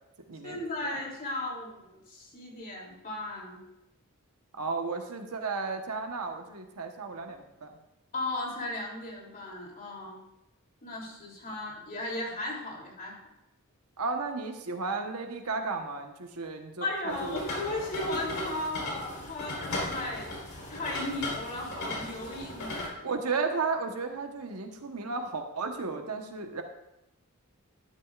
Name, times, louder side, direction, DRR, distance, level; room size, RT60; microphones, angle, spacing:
voice 1, 0.4-3.6 8.1-10.2 10.8-13.2 16.8-23.0, left 2 dB, 40° left, -2 dB, 3.1 m, -36 dB
voice 2, 4.6-7.7 14.0-17.4 23.0-26.6, right 4 dB, 85° right, 4 dB, 1.1 m, -34 dB
sound 1, 17.1-22.9, left 2 dB, 65° left, 3.8 m, -37 dB
12.5 x 11.0 x 2.4 m, 0.87 s
head